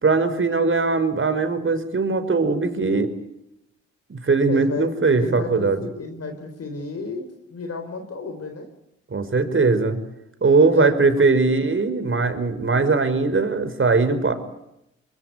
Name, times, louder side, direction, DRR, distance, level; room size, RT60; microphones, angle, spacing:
voice 1, 0.0-3.1 4.1-5.8 9.1-10.0 10.4-14.3, right 3 dB, 40° right, 10 dB, 5.2 m, -20 dB
voice 2, 4.5-4.9 5.2-8.7 10.6-11.3, left 4 dB, 50° left, 6 dB, 4.5 m, -32 dB
24.5 x 22.5 x 9.6 m, 0.83 s
supercardioid pair, 45°, 31 cm